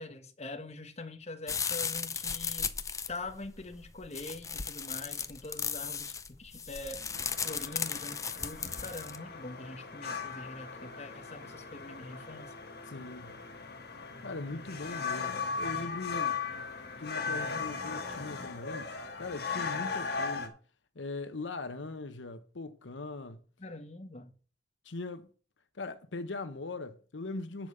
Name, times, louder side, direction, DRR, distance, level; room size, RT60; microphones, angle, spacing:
voice 1, 0.0-2.7 3.1-7.0 7.4-12.5 23.6-24.3, left 2 dB, 35° left, 1.1 m, -44 dB
sound 1, 1.5-9.2, left 6 dB, 20° left, 0.5 m, -36 dB
sound 2, 7.1-20.5, left 5 dB, 60° left, 1.8 m, -38 dB
voice 2, 12.9-13.4 14.2-16.5 17.0-18.9 19.2-20.6 20.9-23.4 24.8-25.3 25.7-27.7, left 3 dB, 90° left, 0.9 m, -40 dB
10.5 x 5.1 x 6.6 m
head